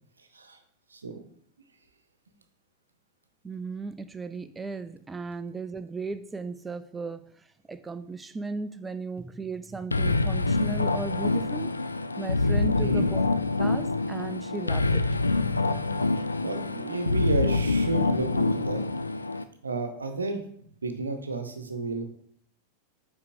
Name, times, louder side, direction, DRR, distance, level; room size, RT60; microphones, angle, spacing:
voice 1, 0.9-1.2 12.8-13.1 16.1-18.8 19.6-22.0, right 3 dB, 75° right, 7 dB, 0.8 m, -32 dB
voice 2, 3.4-11.8 12.2-13.2 13.6-15.0, right 3 dB, 10° right, 11 dB, 0.4 m, -36 dB
sound 1, 9.9-19.4, left 3 dB, 80° left, 0.3 m, -26 dB
8.2 x 5.3 x 2.7 m, 0.64 s
figure-of-eight pair, 90°, 0 cm